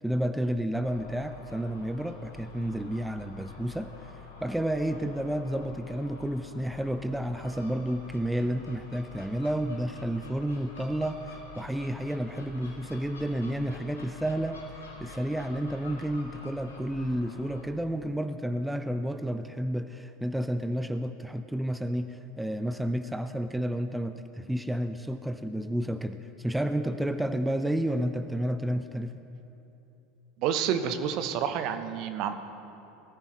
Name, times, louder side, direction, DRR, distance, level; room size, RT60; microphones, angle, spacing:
voice 1, 0.0-4.1 4.4-29.1, right 1 dB, 5° right, 9 dB, 0.5 m, -31 dB
Gull seagull, 0.8-17.7, left 5 dB, 85° left, 2.2 m, -48 dB
voice 2, 30.4-32.3, right 8 dB, 50° right, 9 dB, 0.8 m, -29 dB
20.0 x 14.0 x 3.1 m, 2.9 s
figure-of-eight pair, 80°, 0 cm